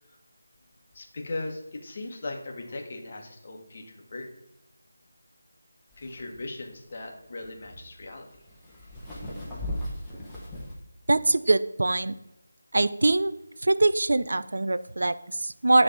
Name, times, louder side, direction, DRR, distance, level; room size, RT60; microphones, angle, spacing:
voice 1, 0.9-4.3 6.0-8.3, left 2 dB, 35° left, 2 dB, 1.1 m, -38 dB
sound 1, 5.9-10.7, left 1 dB, 5° left, 1.1 m, -38 dB
voice 2, 11.1-12.1 12.7-13.3 13.6-15.8, right 2 dB, 55° right, 14 dB, 0.3 m, -23 dB
9.3 x 3.4 x 5.2 m, 0.84 s
figure-of-eight pair, 160°, 0 cm